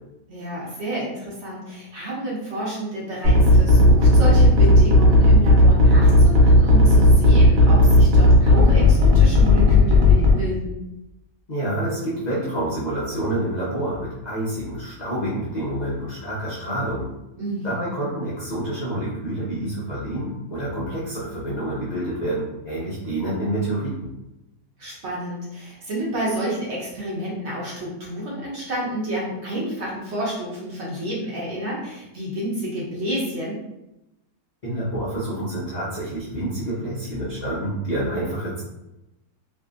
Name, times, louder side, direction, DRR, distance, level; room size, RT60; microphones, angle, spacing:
voice 1, 0.3-10.7 17.4-17.9 24.8-33.6, right 1 dB, 55° right, -5 dB, 0.9 m, -30 dB
sound 1, 3.2-10.3, left 1 dB, 90° right, 1.3 m, -13 dB
voice 2, 11.5-17.1 17.6-24.1 34.6-38.6, right 1 dB, 85° left, -8 dB, 0.3 m, -28 dB
2.6 x 2.5 x 2.4 m, 0.93 s
omnidirectional pair, 1.6 m